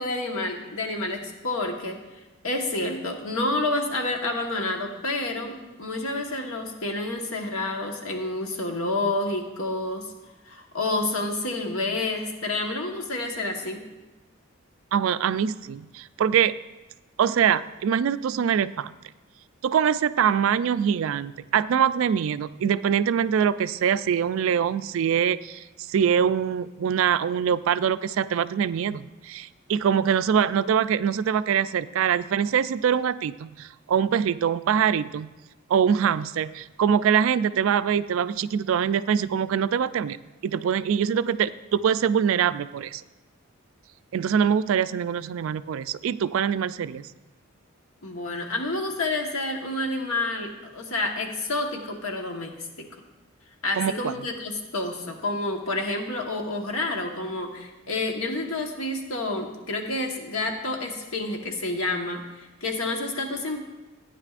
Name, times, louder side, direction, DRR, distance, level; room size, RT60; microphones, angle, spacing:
voice 1, 0.0-2.0 2.4-10.0 10.5-13.8 48.0-52.7 53.6-63.7, left 2 dB, 80° left, 2 dB, 1.3 m, -29 dB
voice 2, 14.9-16.6 17.2-18.9 19.6-35.3 35.7-40.2 40.4-43.0 44.1-47.1 53.8-54.1, right 8 dB, 70° right, 15 dB, 0.3 m, -24 dB
15.0 x 9.7 x 2.5 m, 1.1 s
head